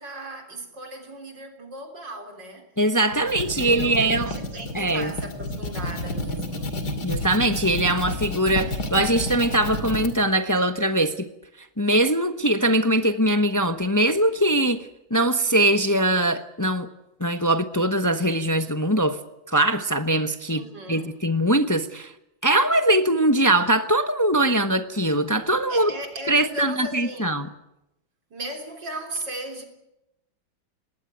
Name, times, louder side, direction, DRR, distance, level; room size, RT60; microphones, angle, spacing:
voice 1, 0.0-2.7 3.1-6.7 20.5-21.1 25.7-27.4 28.3-29.6, right 1 dB, 60° right, 4.1 m, -37 dB
voice 2, 2.8-4.3 4.7-5.1 7.0-11.3 11.8-16.9 17.2-19.2 19.5-20.6 20.9-22.1 22.4-25.9 26.3-27.5, right 1 dB, 15° left, 0.6 m, -22 dB
sound 1, 3.0-10.1, left 1 dB, 55° left, 3.1 m, -30 dB
20.0 x 18.5 x 9.3 m
omnidirectional pair, 2.2 m